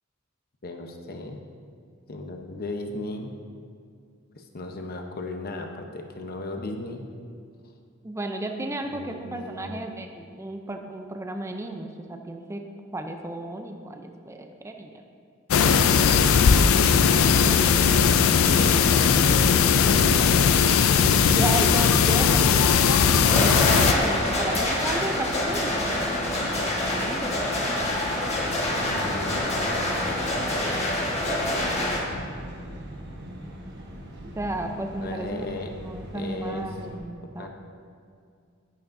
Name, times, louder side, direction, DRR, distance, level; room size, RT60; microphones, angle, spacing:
voice 1, 0.6-1.4 2.1-3.3 4.4-7.0 8.9-9.8 18.6-21.3 28.9-29.9 32.1-32.3 35.0-35.7 36.1-36.7 37.4-37.5, left 2 dB, 50° left, 4 dB, 0.8 m, -36 dB
voice 2, 8.0-12.6 12.9-15.0 21.2-22.7 23.1-27.7 34.4-35.5 35.8-37.5, right 1 dB, 15° right, 4 dB, 0.5 m, -34 dB
sound 1, 15.5-23.9, left 6 dB, 85° left, 0.4 m, -19 dB
sound 2, 19.0-37.0, right 1 dB, 55° right, 1.1 m, -44 dB
sound 3, 23.2-32.0, left 1 dB, 35° left, 1.4 m, -26 dB
11.0 x 9.3 x 2.6 m, 2.3 s
head